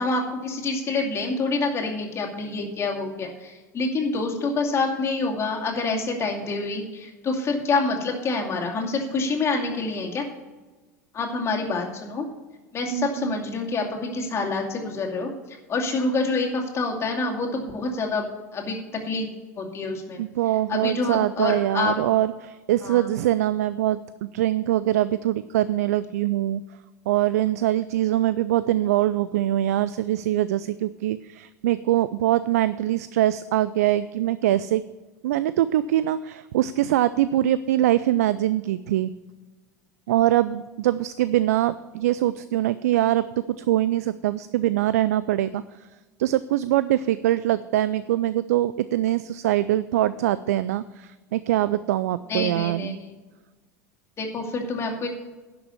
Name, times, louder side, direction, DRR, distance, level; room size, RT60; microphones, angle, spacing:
voice 1, 0.0-10.3 11.1-12.3 12.7-15.3 15.7-18.3 18.5-18.8 19.0-19.3 19.6-20.2 20.7-21.9 22.8-23.1 52.3-53.2 54.2-55.1, left 3 dB, 30° left, 0 dB, 2.4 m, -27 dB
voice 2, 12.9-13.3 20.2-26.6 27.1-34.8 35.2-39.1 40.1-43.3 43.6-45.9 46.2-53.0, right 13 dB, 65° right, 16 dB, 0.3 m, -23 dB
11.0 x 6.1 x 7.0 m, 1.2 s
figure-of-eight pair, 75°, 9 cm